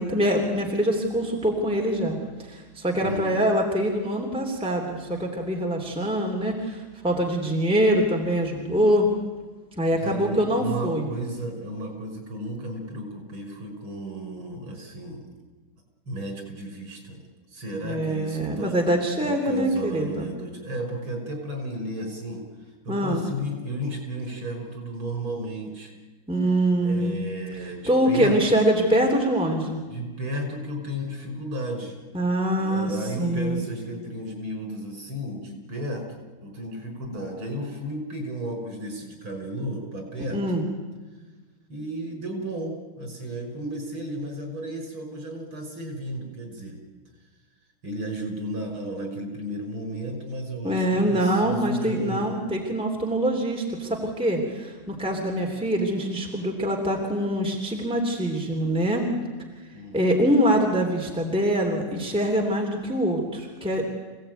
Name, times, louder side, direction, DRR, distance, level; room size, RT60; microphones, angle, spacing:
voice 1, 0.0-9.1 9.8-11.1 17.8-20.3 22.9-23.3 26.3-27.1 27.8-29.8 32.1-32.9 33.2-33.6 40.3-40.6 50.6-59.1 59.9-63.9, equal, 5° right, 1 dB, 3.0 m, -24 dB
voice 2, 3.0-3.4 10.0-15.3 16.1-17.2 17.5-18.8 19.2-25.9 26.8-28.6 29.8-32.0 32.6-40.4 41.7-46.8 47.8-52.3 59.7-60.1, right 1 dB, 90° right, 3 dB, 6.1 m, -34 dB
25.5 x 17.5 x 9.2 m, 1.3 s
omnidirectional pair, 2.2 m